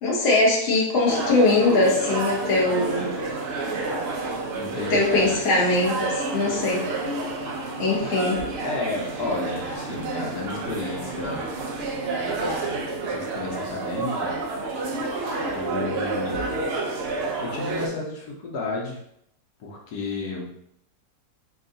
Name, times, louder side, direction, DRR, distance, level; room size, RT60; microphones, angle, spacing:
voice 1, 0.0-3.2 4.9-6.9 7.8-8.4, left 2 dB, 45° left, -4 dB, 1.2 m, -21 dB
sound 1, 1.1-17.9, right 3 dB, 65° right, 0.6 m, -29 dB
voice 2, 4.6-5.3 8.6-11.5 12.1-14.3 15.5-16.5 17.4-19.0 19.6-20.5, left 3 dB, 80° left, -2 dB, 1.3 m, -32 dB
3.6 x 2.4 x 3.8 m, 0.74 s
omnidirectional pair, 1.6 m